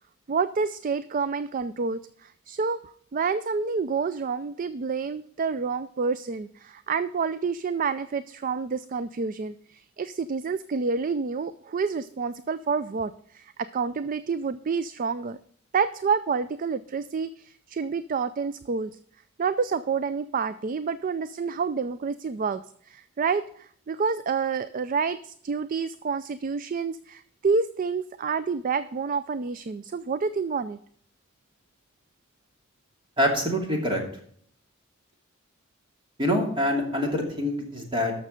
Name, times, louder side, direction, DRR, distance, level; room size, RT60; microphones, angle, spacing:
voice 1, 0.3-2.8 3.1-15.4 15.7-18.9 19.4-22.6 22.9-30.8, right 5 dB, 40° right, 14 dB, 0.4 m, -28 dB
voice 2, 33.2-34.0 36.2-38.1, equal, 25° right, 1 dB, 2.6 m, -25 dB
12.5 x 6.5 x 5.1 m, 0.62 s
head